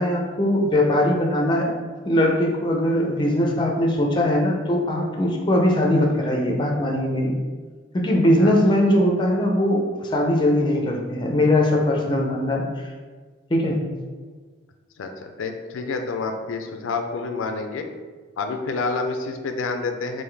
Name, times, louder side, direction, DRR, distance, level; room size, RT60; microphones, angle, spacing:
voice 1, 0.0-1.7 2.0-7.4 7.9-12.9 13.5-13.8, left 1 dB, 25° left, 0 dB, 0.4 m, -20 dB
voice 2, 15.0-17.9 18.4-20.2, left 3 dB, 90° left, 5 dB, 0.4 m, -28 dB
3.8 x 2.5 x 3.2 m, 1.5 s
head